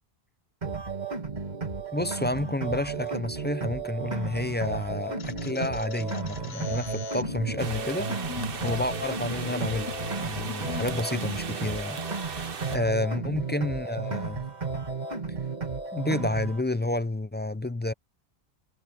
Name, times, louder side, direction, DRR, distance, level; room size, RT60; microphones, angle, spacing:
sound 1, 0.6-16.6, right 4 dB, 45° right, 2.3 m, -34 dB
voice 1, 1.9-8.1 8.6-9.9 10.2-14.5 15.9-17.9, left 1 dB, 15° left, 0.4 m, -30 dB
sound 2, 5.2-11.0, left 5 dB, 75° left, 1.3 m, -40 dB
sound 3, 7.6-12.8, right 6 dB, 60° right, 1.2 m, -38 dB
omnidirectional pair, 1.0 m